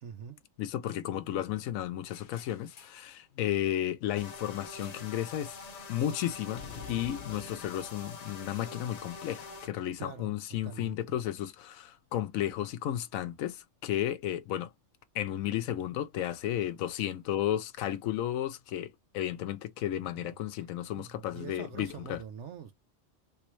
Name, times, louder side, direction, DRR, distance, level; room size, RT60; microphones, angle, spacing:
voice 1, 0.0-0.4 10.0-10.3 10.6-11.0 20.2-20.4 21.0-22.7, right 7 dB, 65° right, 0.9 m, -44 dB
voice 2, 0.6-5.6 5.9-6.6 6.9-14.7 15.1-18.9 19.1-22.2, left 12 dB, 90° left, 1.0 m, -33 dB
sound 1, 2.1-3.1 4.8-5.2 5.5-5.8 6.6-8.9, left 7 dB, 60° left, 1.0 m, -49 dB
sound 2, 4.2-9.7, left 4 dB, 40° left, 0.7 m, -45 dB
3.3 x 3.0 x 3.0 m
omnidirectional pair, 1.4 m